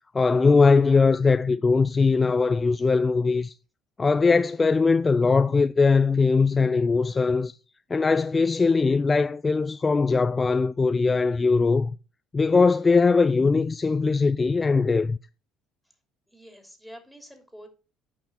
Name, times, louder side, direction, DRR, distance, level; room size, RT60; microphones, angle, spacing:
voice 1, 0.1-3.5 4.0-7.5 7.9-12.0 12.3-15.2, left 4 dB, 25° left, 0.4 m, -21 dB
voice 2, 16.3-17.7, equal, ahead, 3.0 m, -47 dB
8.7 x 5.8 x 4.4 m
hypercardioid pair, 60°, 0 cm